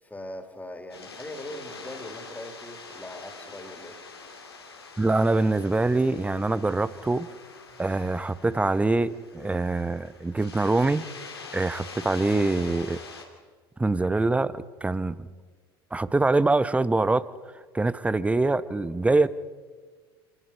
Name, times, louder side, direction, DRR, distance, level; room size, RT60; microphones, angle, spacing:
voice 1, 0.0-4.0, left 1 dB, 10° left, 5 dB, 3.1 m, -40 dB
sound 1, 0.9-13.2, left 4 dB, 90° left, 2.6 m, -44 dB
voice 2, 5.0-7.3 7.8-11.1 11.5-13.0 13.8-15.3 15.9-17.3 17.7-19.3, right 2 dB, 10° right, 16 dB, 0.8 m, -24 dB
27.5 x 19.5 x 5.5 m, 1.5 s
hypercardioid pair, 75°, 13 cm